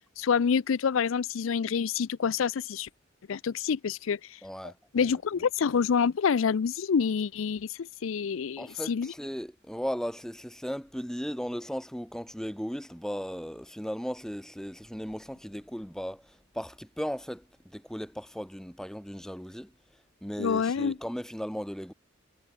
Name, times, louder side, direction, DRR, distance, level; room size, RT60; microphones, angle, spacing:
voice 1, 0.2-2.9 3.3-4.4 4.9-9.1 20.4-21.0, left 6 dB, 80° left, 0.4 m, -27 dB
voice 2, 4.4-5.1 8.6-19.7 20.2-21.9, equal, 5° left, 1.5 m, -36 dB
head